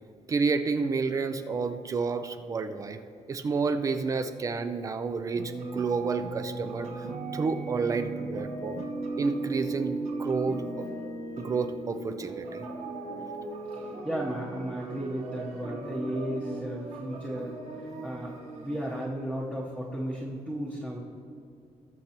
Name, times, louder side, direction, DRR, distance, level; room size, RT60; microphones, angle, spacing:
voice 1, 0.3-3.0 3.3-7.0 7.3-8.8 9.2-10.9 11.4-12.6, right 4 dB, 25° right, 9 dB, 0.4 m, -30 dB
sound 1, 5.4-19.1, right 3 dB, 65° right, 1.2 m, -37 dB
voice 2, 13.7-18.4 18.6-21.0, right 1 dB, 10° right, -6 dB, 0.9 m, -34 dB
19.5 x 6.6 x 2.9 m, 2.5 s
cardioid pair, 180°, 13 cm